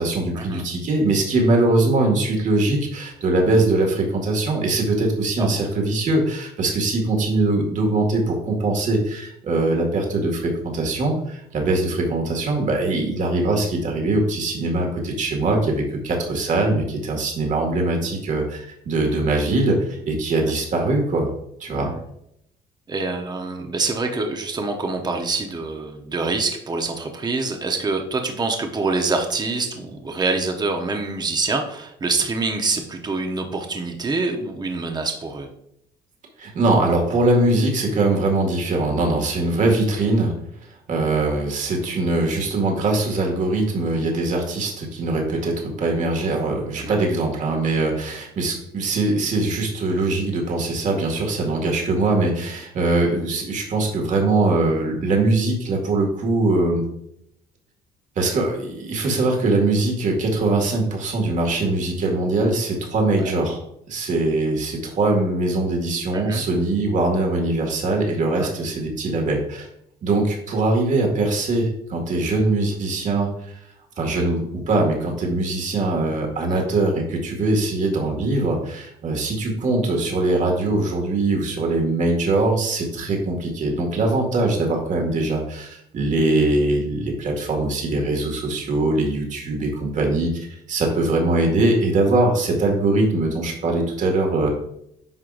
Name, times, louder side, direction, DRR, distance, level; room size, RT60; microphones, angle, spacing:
voice 1, 0.0-21.3 21.6-21.9 36.4-40.3 40.9-56.8 58.2-63.6 63.9-69.7 70.0-73.6 74.0-94.5, right 2 dB, 50° right, 1 dB, 2.0 m, -22 dB
voice 2, 21.7-22.0 22.9-35.5 46.8-47.0 63.2-63.3 66.1-66.4 68.4-68.5 76.4-76.6, right 3 dB, 25° right, 4 dB, 1.0 m, -26 dB
9.7 x 5.7 x 2.6 m, 0.75 s
cardioid pair, 110°, 17 cm